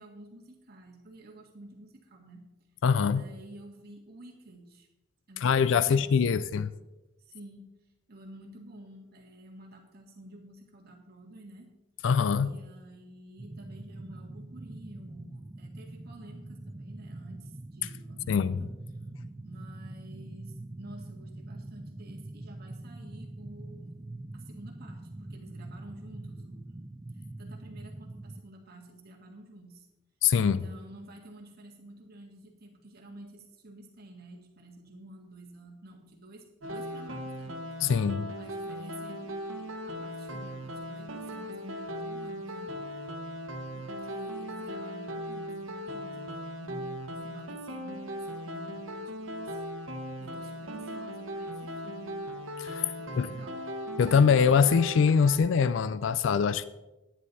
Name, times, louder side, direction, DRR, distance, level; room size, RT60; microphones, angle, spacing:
voice 1, 0.0-2.4 3.1-4.9 5.3-6.2 7.2-11.7 12.4-19.0 19.4-23.9 24.3-26.9 27.1-29.9 30.4-37.6 38.4-42.7 43.7-49.6 50.2-52.2 53.0-53.7, right 1 dB, 50° right, 1.7 m, -50 dB
voice 2, 2.8-3.2 5.4-6.7 12.0-12.6 18.3-18.6 30.2-30.6 37.8-38.3 52.6-52.9 53.2-53.3 54.0-56.6, left 6 dB, 65° left, 0.4 m, -23 dB
sound 1, 13.4-28.4, right 2 dB, 15° right, 0.4 m, -44 dB
sound 2, 36.6-55.4, equal, 80° right, 1.2 m, -38 dB
10.5 x 10.0 x 4.0 m
head